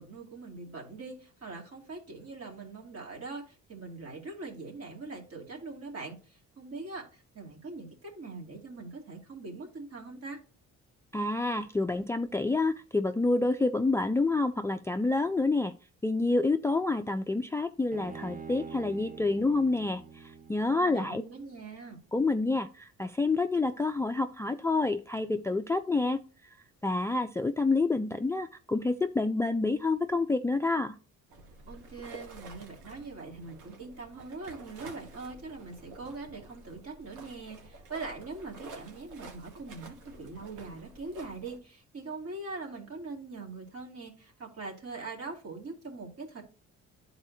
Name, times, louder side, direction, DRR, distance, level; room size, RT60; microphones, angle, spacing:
voice 1, 0.0-10.4 20.7-22.0 31.7-46.4, right 3 dB, 50° right, 0 dB, 2.4 m, -42 dB
voice 2, 11.1-15.7 16.0-20.0 20.5-21.2 22.1-26.2 26.8-31.0, left 3 dB, 10° left, 9 dB, 0.3 m, -28 dB
Bowed string instrument, 17.9-21.2, right 5 dB, 30° right, 1.0 m, -46 dB
sound 1, 31.3-41.6, right 2 dB, 80° right, 1.5 m, -50 dB
11.5 x 4.1 x 2.7 m, 0.36 s
cardioid pair, 90°, 30 cm